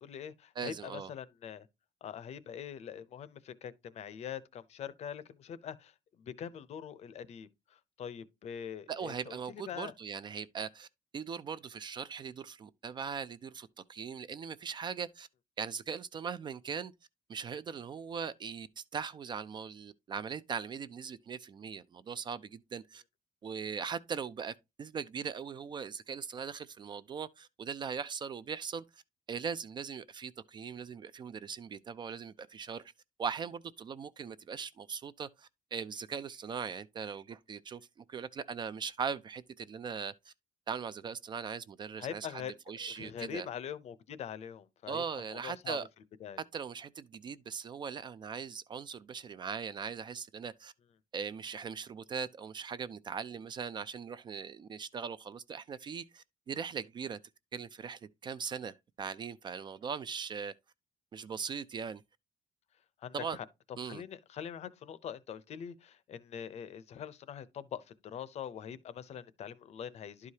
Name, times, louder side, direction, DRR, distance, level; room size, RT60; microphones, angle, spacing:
voice 1, 0.0-1.7 2.0-9.9 42.0-42.5 42.8-45.0 45.3-45.8 46.2-46.4 63.0-63.5 63.8-70.3, left 8 dB, 45° left, 0.6 m, -43 dB
voice 2, 0.6-1.1 8.9-10.9 11.1-15.3 15.6-16.9 17.3-23.0 23.4-29.0 29.3-32.8 33.2-40.3 40.7-42.4 42.7-43.5 44.9-45.9 46.5-50.7 51.1-57.2 57.5-60.5 61.1-62.0 63.1-63.4 63.8-64.0, right 6 dB, 30° right, 0.3 m, -40 dB
11.5 x 4.8 x 2.8 m
cardioid pair, 170°, 15 cm